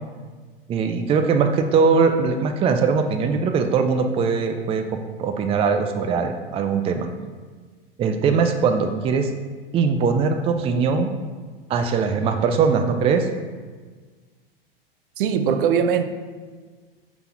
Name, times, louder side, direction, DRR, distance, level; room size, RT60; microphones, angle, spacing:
voice 1, 0.7-7.1 8.0-9.3 9.7-11.1 11.7-13.3, right 5 dB, 20° right, 6 dB, 0.4 m, -21 dB
voice 2, 15.2-16.0, right 7 dB, 65° right, 9 dB, 0.6 m, -20 dB
5.5 x 4.0 x 4.4 m, 1.5 s
hypercardioid pair, 100°, 29 cm